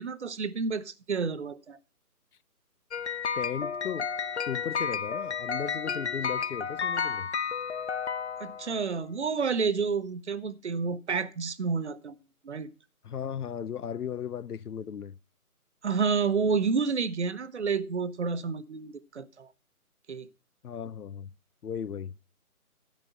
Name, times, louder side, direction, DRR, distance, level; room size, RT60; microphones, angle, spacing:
voice 1, 0.0-1.8 8.4-12.2 12.4-12.7 15.8-19.5 20.1-20.3, right 5 dB, 50° right, 0.9 m, -29 dB
sound 1, 2.9-8.9, left 6 dB, 50° left, 0.5 m, -32 dB
voice 2, 3.4-4.1 4.5-7.3 13.0-15.2 20.6-21.3 21.6-22.1, left 8 dB, 80° left, 0.8 m, -36 dB
12.5 x 5.3 x 6.6 m
figure-of-eight pair, 160°, 45 cm